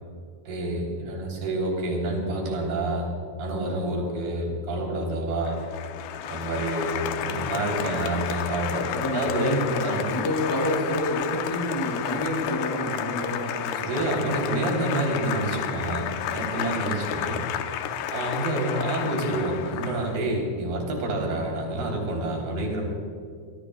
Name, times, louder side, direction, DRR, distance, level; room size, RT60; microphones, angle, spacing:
voice 1, 0.5-3.1 3.4-5.6 6.3-10.1 13.8-17.4 18.1-22.8, right 2 dB, 65° right, 0 dB, 5.2 m, -28 dB
Applause, 5.5-20.3, left 10 dB, 80° left, 2.7 m, -31 dB
voice 2, 8.9-14.5 16.9-17.0, equal, 5° left, -4 dB, 4.8 m, -29 dB
25.0 x 22.0 x 2.3 m, 2.2 s
omnidirectional pair, 4.9 m